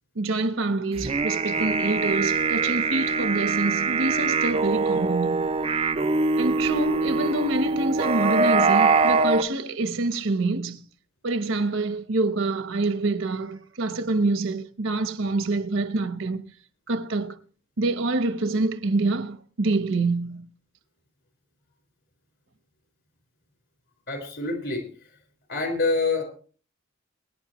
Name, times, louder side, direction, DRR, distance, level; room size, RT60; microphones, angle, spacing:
voice 1, 0.1-5.5 6.4-10.8 11.2-16.4 16.9-17.4 17.8-20.5, right 2 dB, 70° right, 0.9 m, -26 dB
sound 1, 1.0-9.4, right 4 dB, 30° right, 0.6 m, -23 dB
voice 2, 24.1-24.8 25.5-26.2, left 3 dB, 60° left, 4.6 m, -26 dB
23.5 x 10.0 x 3.1 m
head